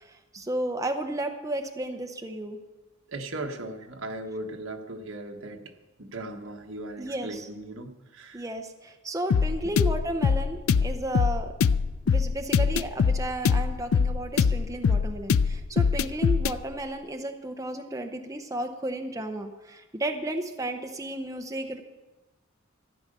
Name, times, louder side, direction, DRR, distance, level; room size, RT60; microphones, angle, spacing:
voice 1, 0.0-2.6 7.0-7.5 8.3-11.5 12.0-21.8, right 1 dB, 15° right, 4 dB, 0.7 m, -33 dB
voice 2, 3.1-5.7 6.0-8.4, right 2 dB, 70° right, 3 dB, 1.4 m, -38 dB
sound 1, 9.3-16.6, left 5 dB, 85° left, 0.4 m, -23 dB
14.0 x 9.6 x 6.7 m, 1.2 s
head